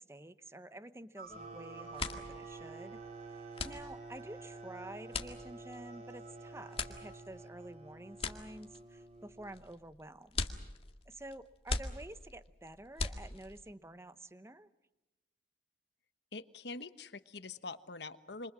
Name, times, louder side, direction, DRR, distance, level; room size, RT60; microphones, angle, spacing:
voice 1, 0.0-3.0 3.3-10.5 11.1-14.7, right 1 dB, 15° right, 13 dB, 0.9 m, -50 dB
sound 1, 1.2-7.2, right 3 dB, 55° right, 7.0 m, -55 dB
sound 2, 1.3-1.5 1.8-13.7, left 3 dB, 35° left, 2.0 m, -41 dB
sound 3, 1.3-9.8, right 3 dB, 40° right, 2.8 m, -50 dB
voice 2, 16.3-18.5, left 3 dB, 70° left, 12 dB, 1.2 m, -45 dB
28.0 x 26.5 x 6.2 m, 1.0 s
head